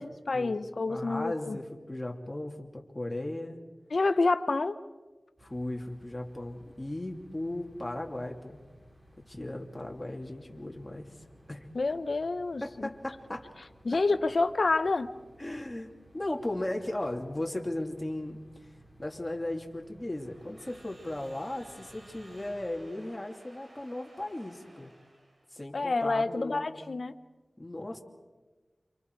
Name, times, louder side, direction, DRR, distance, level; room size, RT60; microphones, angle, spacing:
voice 1, 0.0-1.6 3.9-4.8 11.7-12.9 13.8-15.1 25.7-27.2, left 3 dB, 65° left, 11 dB, 1.0 m, -28 dB
voice 2, 0.9-3.6 5.4-8.6 9.3-11.1 11.5-11.7 12.6-13.5 15.4-18.4 19.0-24.9 25.5-26.8 27.6-28.0, left 1 dB, 25° left, 1 dB, 2.8 m, -36 dB
sound 1, 5.4-22.7, equal, 25° right, 5.3 m, -58 dB
Crowd / Alarm, 20.0-25.6, right 1 dB, 55° right, 3.7 m, -56 dB
29.0 x 26.5 x 4.8 m, 1.3 s
wide cardioid pair, 80°, 0 cm